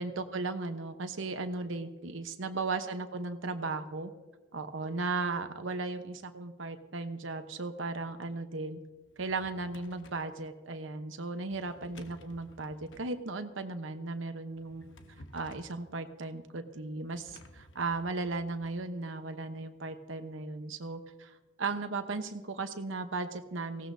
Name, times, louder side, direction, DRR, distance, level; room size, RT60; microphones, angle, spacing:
voice 1, 0.0-4.1 4.5-8.8 9.2-14.9 15.3-21.3 21.6-23.9, right 3 dB, 85° right, 8 dB, 1.0 m, -36 dB
Drawer open or close, 9.0-10.3 11.5-13.1 14.5-15.8 17.1-18.8, left 1 dB, 75° left, 1.0 m, -55 dB
18.5 x 16.5 x 2.7 m, 1.2 s
head